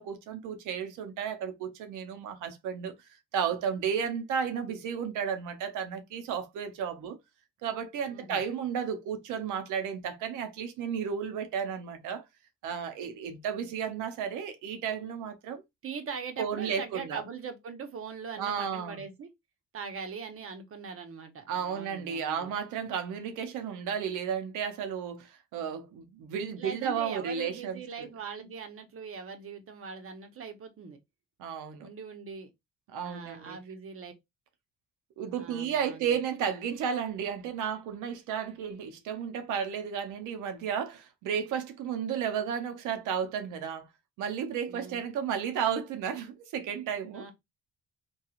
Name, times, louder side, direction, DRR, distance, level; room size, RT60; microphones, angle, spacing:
voice 1, 0.0-2.9 3.3-7.2 7.6-12.2 12.6-15.6 16.4-17.2 18.4-19.0 21.5-28.1 31.4-31.9 32.9-33.6 35.2-43.9 44.2-47.3, right 7 dB, 90° right, 0.6 m, -33 dB
voice 2, 8.1-8.4 15.8-19.3 19.7-22.5 26.6-31.0 31.8-32.5 33.0-34.1 35.4-36.2 44.7-45.0 47.1-47.3, right 5 dB, 45° right, 0.8 m, -41 dB
2.9 x 2.3 x 2.3 m
cardioid pair, 90°, 30 cm